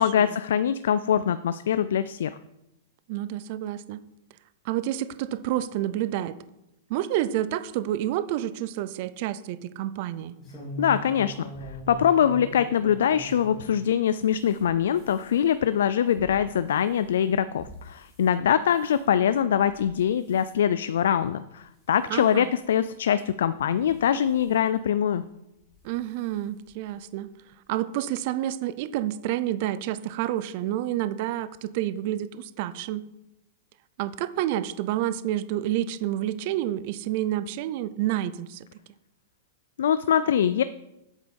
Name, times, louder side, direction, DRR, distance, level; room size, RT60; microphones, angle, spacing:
voice 1, 0.0-2.4 10.8-25.2 39.8-40.6, left 9 dB, 80° left, 13 dB, 0.4 m, -23 dB
voice 2, 3.1-4.0 4.6-6.4 6.9-10.4 22.1-22.5 25.8-27.3 27.7-33.0 34.0-38.7, right 13 dB, 40° right, 15 dB, 0.4 m, -29 dB
sound 1, 10.4-13.7 14.2-18.3 18.7-19.1 19.6-19.9 20.2-20.5 21.1-21.2 21.6-21.7 22.8-22.9 23.7-24.5 25.6-25.8 26.2-26.3 26.6-26.7, equal, 10° left, 2.9 m, -42 dB
8.2 x 8.0 x 5.3 m, 0.90 s
supercardioid pair, 175°, 0 cm